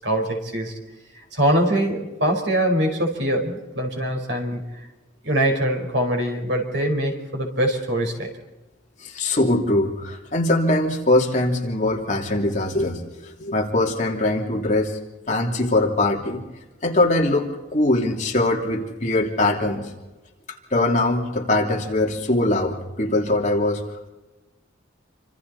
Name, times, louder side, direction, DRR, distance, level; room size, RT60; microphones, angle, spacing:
voice 1, 0.0-0.7 1.3-4.6 5.2-8.3, right 1 dB, 65° right, 3 dB, 4.9 m, -23 dB
voice 2, 9.0-15.0 15.3-16.4 16.8-19.9 20.7-23.8, left 2 dB, 40° left, 0 dB, 3.1 m, -22 dB
28.0 x 26.0 x 4.3 m, 1.1 s
head